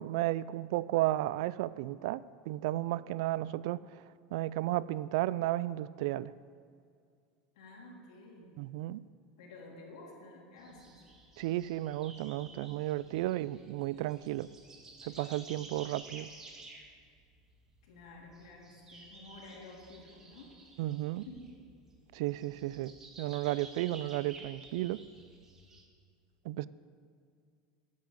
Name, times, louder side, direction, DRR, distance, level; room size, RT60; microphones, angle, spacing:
voice 1, 0.0-3.8 4.3-6.3 8.6-9.0 11.4-14.5 15.0-16.3 20.8-21.3 22.1-25.0 26.5-26.7, right 16 dB, 65° right, 19 dB, 0.3 m, -33 dB
voice 2, 7.5-8.6 9.4-11.0 17.8-20.5 21.2-21.6, left 2 dB, 85° left, -3 dB, 3.1 m, -51 dB
sound 1, 10.6-25.8, right 3 dB, 20° right, 1.4 m, -53 dB
9.8 x 8.5 x 7.4 m, 2.2 s
supercardioid pair, 155°, 3 cm